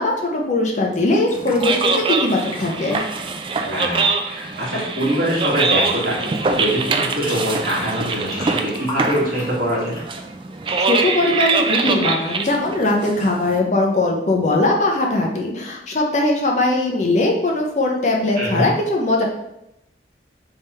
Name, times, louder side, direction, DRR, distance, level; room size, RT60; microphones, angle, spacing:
voice 1, 0.0-3.0 10.9-19.2, left 2 dB, 40° left, 0 dB, 0.6 m, -20 dB
Fill (with liquid), 0.9-3.0 3.6-4.2 4.5-7.4 7.7-10.1 10.6-11.0, left 2 dB, 20° left, 1.0 m, -36 dB
sound 1, 1.3-13.6, right 4 dB, 30° right, 0.3 m, -23 dB
voice 2, 3.6-10.0 18.3-18.7, equal, 50° right, -5 dB, 1.7 m, -23 dB
3.5 x 3.4 x 4.2 m, 0.84 s
head